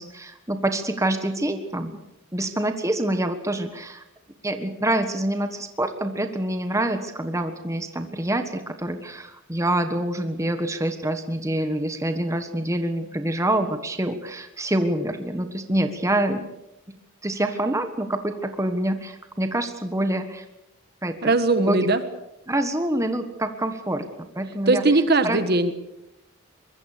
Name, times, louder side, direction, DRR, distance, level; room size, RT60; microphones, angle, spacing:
voice 1, 0.0-2.0 2.3-4.0 4.4-16.5 17.2-20.4 21.0-21.3 21.6-21.9 22.5-24.1 24.3-24.8 25.2-25.4, right 1 dB, 15° right, 7 dB, 1.5 m, -26 dB
voice 2, 21.2-22.0 24.7-25.7, right 2 dB, 50° right, 10 dB, 1.5 m, -20 dB
23.5 x 22.0 x 6.7 m, 0.88 s
head